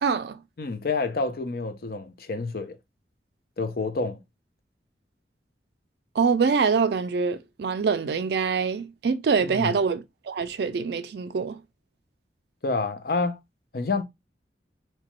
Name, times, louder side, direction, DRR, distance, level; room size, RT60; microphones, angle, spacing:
voice 1, 0.0-0.4 6.2-11.6, right 5 dB, 65° right, 0.4 m, -25 dB
voice 2, 0.6-2.8 3.6-4.2 9.4-9.7 12.6-13.4 13.7-14.0, left 3 dB, 55° left, 0.5 m, -28 dB
2.9 x 2.2 x 3.0 m
head